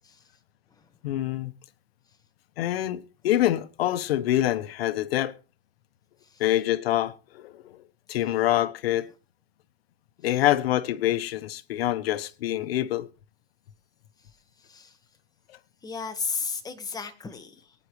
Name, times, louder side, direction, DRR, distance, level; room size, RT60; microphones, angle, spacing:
voice 1, 1.0-1.5 2.6-5.3 6.4-7.8 8.1-9.1 10.2-13.1, left 13 dB, 85° left, 1.1 m, -26 dB
voice 2, 14.6-15.0 15.8-17.7, left 5 dB, 15° left, 1.6 m, -34 dB
22.5 x 9.7 x 3.2 m
supercardioid pair, 145°, 29 cm